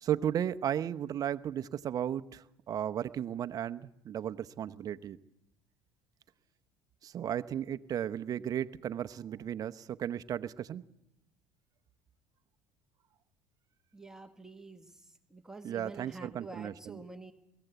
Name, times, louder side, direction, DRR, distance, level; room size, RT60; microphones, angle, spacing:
voice 1, 0.0-5.2 7.0-10.8 15.6-17.0, right 10 dB, 40° right, 11 dB, 0.9 m, -35 dB
voice 2, 13.9-17.3, right 3 dB, 5° right, 5 dB, 1.5 m, -48 dB
22.0 x 15.5 x 8.2 m, 0.87 s
supercardioid pair, 110°, 9 cm